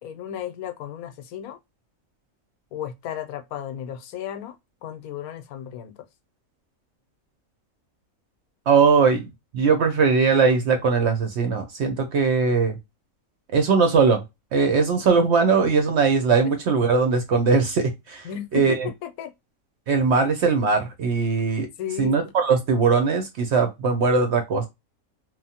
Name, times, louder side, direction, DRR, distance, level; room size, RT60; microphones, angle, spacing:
voice 1, 0.0-1.6 2.7-4.5 4.8-6.0 18.2-19.3 21.8-22.2, left 10 dB, 80° left, 1.0 m, -34 dB
voice 2, 8.7-9.2 9.5-12.8 13.5-14.2 14.5-18.9 19.9-21.7 22.0-24.7, right 5 dB, 65° right, 0.7 m, -20 dB
2.9 x 2.0 x 2.7 m
omnidirectional pair, 1.5 m